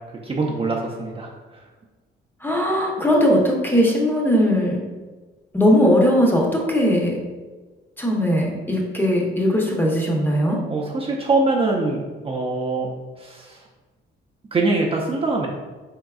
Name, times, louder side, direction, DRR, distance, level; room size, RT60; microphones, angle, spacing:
voice 1, 0.2-1.3 10.7-12.9 13.2-13.6 14.5-15.5, right 3 dB, 30° right, -2 dB, 0.5 m, -23 dB
voice 2, 2.4-4.8 5.5-7.2 8.0-10.6, equal, 10° left, -1 dB, 0.8 m, -19 dB
3.8 x 3.5 x 2.3 m, 1.3 s
cardioid pair, 90°, 20 cm